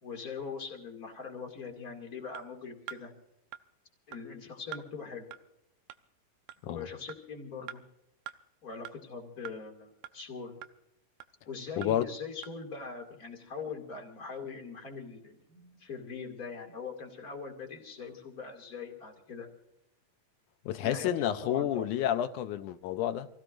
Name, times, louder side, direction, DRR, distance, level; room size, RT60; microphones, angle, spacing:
voice 1, 0.0-3.1 4.1-5.3 6.6-7.8 8.6-10.6 11.5-19.5 20.8-22.1, left 5 dB, 30° left, 2.3 m, -42 dB
sound 1, 2.3-2.4 2.9-3.0 3.5-3.6 4.1-4.2 4.7-4.9 5.3-5.4 5.9-6.0 6.5-6.6 7.1-7.2 7.7-7.8 8.3-8.4 8.9-9.0 9.5-9.6 10.0-10.1 10.6-10.7 11.2-11.3 11.8-11.9 12.4-12.5, right 13 dB, 80° right, 1.8 m, -43 dB
voice 2, 20.7-23.3, left 11 dB, 75° left, 1.9 m, -30 dB
27.5 x 16.5 x 2.5 m
omnidirectional pair, 4.2 m